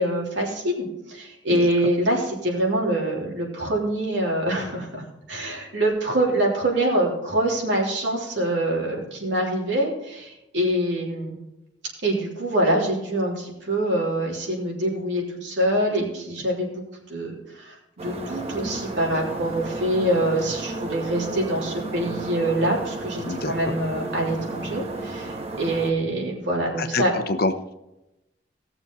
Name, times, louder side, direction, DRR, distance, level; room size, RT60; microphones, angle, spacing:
voice 1, 0.0-5.0 5.3-11.3 12.0-16.7 17.1-27.1, right 1 dB, 75° right, -2 dB, 3.6 m, -25 dB
sound 1, 18.0-25.9, right 2 dB, 35° right, 1.3 m, -33 dB
voice 2, 23.2-23.7 26.8-27.7, left 3 dB, 55° left, 9 dB, 0.9 m, -27 dB
18.0 x 7.0 x 4.1 m, 0.93 s
head